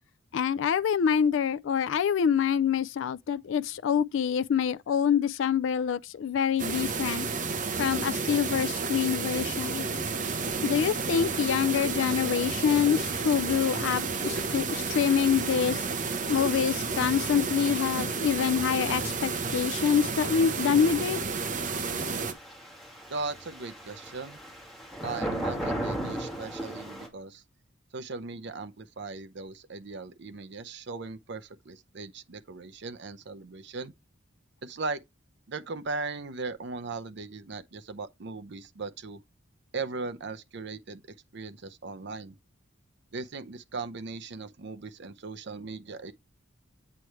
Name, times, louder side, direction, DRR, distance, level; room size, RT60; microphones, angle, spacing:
voice 1, 0.3-7.3 7.8-9.9 10.6-15.8 16.3-21.3, left 7 dB, 65° left, 0.3 m, -26 dB
sound 1, 6.6-22.3, right 4 dB, 40° right, 0.9 m, -31 dB
sound 2, 10.1-27.1, right 1 dB, ahead, 1.7 m, -41 dB
voice 2, 23.1-24.4 25.0-27.4 27.9-33.9 34.6-35.0 35.5-39.2 39.7-42.3 43.1-46.1, right 3 dB, 60° right, 0.6 m, -38 dB
8.3 x 3.2 x 4.5 m
head